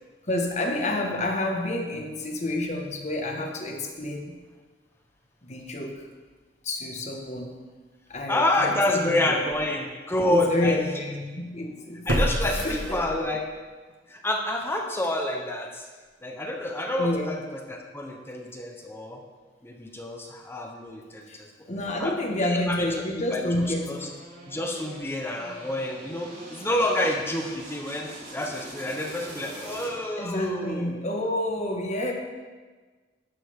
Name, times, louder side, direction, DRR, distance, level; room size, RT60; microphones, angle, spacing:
voice 1, 0.2-4.4 5.4-6.1 6.6-7.6 8.1-9.4 10.2-12.1 12.6-13.0 17.0-17.3 21.3-21.4 21.7-24.1 30.2-32.1, left 1 dB, 40° left, 1 dB, 1.7 m, -29 dB
voice 2, 8.3-11.0 12.1-13.4 14.1-15.9 16.2-19.2 19.6-21.5 22.0-24.1 24.5-31.0, left 1 dB, 15° left, 2 dB, 1.1 m, -28 dB
sound 1, 8.8-8.9 9.5-9.6 12.1-13.5 13.9-14.0, equal, 85° right, 1.7 m, -28 dB
sound 2, 23.5-30.3, right 1 dB, 45° right, 4.3 m, -44 dB
12.0 x 11.5 x 3.7 m, 1.4 s
head